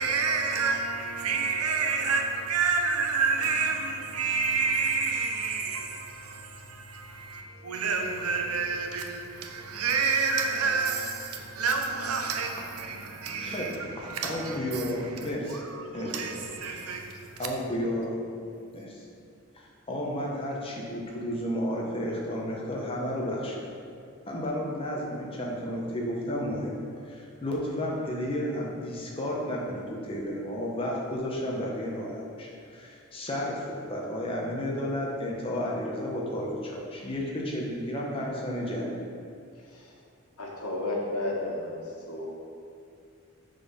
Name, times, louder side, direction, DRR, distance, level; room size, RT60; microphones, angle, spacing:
voice 1, 0.0-17.5, right 5 dB, 85° right, 0.8 m, -29 dB
voice 2, 13.4-15.7 15.9-16.5 17.4-18.2 18.7-19.1 19.5-23.7 24.3-26.8 27.1-39.0, equal, 25° left, 1.0 m, -32 dB
voice 3, 40.4-41.8 42.1-42.2, left 2 dB, 90° left, 1.4 m, -32 dB
6.6 x 4.1 x 5.6 m
head